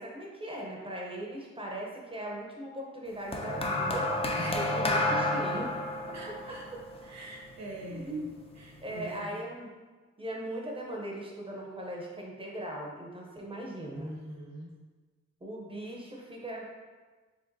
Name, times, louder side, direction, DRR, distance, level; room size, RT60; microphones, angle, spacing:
voice 1, 0.0-4.1 4.4-5.8 6.1-6.8 7.9-8.3 8.8-9.7 10.2-14.1 15.4-16.7, right 1 dB, 20° right, -2 dB, 0.6 m, -39 dB
sound 1, 3.3-7.8 8.7-8.9, left 1 dB, 20° left, 0.4 m, -30 dB
voice 2, 4.4-5.0 6.1-6.7 7.0-9.4 13.9-14.7, right 1 dB, 65° right, 0 dB, 0.9 m, -43 dB
5.0 x 3.4 x 2.6 m, 1.3 s
wide cardioid pair, 155°, 29 cm